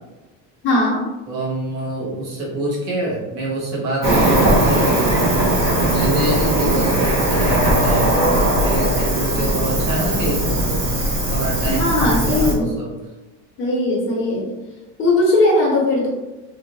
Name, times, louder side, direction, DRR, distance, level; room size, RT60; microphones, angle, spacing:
voice 1, 0.6-1.0 11.7-12.7 13.6-14.5 15.0-16.1, left 2 dB, 30° left, -3 dB, 0.7 m, -18 dB
voice 2, 1.3-5.2 5.8-10.8 11.3-12.9, right 1 dB, 75° right, -4 dB, 1.3 m, -26 dB
Cricket, 4.0-12.5, right 1 dB, 45° right, 1.1 m, -18 dB
3.2 x 2.6 x 2.6 m, 1.1 s
cardioid pair, 165°, 39 cm